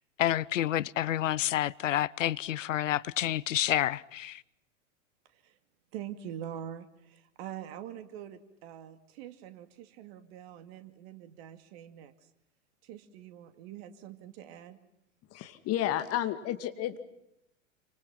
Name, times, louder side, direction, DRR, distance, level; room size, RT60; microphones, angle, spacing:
voice 1, 0.2-4.4, left 12 dB, 70° left, 0.8 m, -29 dB
voice 2, 5.9-12.1 12.8-14.8, right 10 dB, 50° right, 2.6 m, -44 dB
voice 3, 15.3-17.0, left 12 dB, 35° left, 2.4 m, -31 dB
29.0 x 25.5 x 5.9 m
figure-of-eight pair, 95°, 40 cm